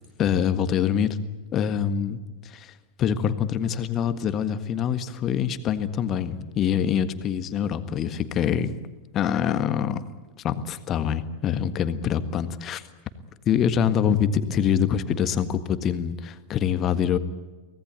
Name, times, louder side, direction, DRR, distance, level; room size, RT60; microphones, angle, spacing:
voice 1, 0.2-1.2 1.5-8.8 9.1-10.0 10.4-12.8 13.4-17.2, left 8 dB, 30° left, 11 dB, 1.6 m, -25 dB
24.5 x 18.5 x 9.4 m, 1.2 s
figure-of-eight pair, 90°, 0 cm